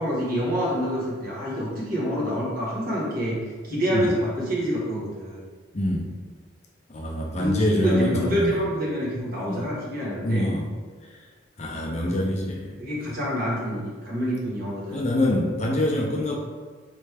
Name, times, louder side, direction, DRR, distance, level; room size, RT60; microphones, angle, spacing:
voice 1, 0.0-5.4 7.4-10.5 12.0-12.2 12.8-15.0, equal, 45° right, -6 dB, 1.4 m, -27 dB
voice 2, 6.9-8.5 9.5-9.6 10.2-10.7 11.6-12.7 14.9-16.4, left 1 dB, 35° left, -1 dB, 0.5 m, -25 dB
4.4 x 3.2 x 3.4 m, 1.4 s
head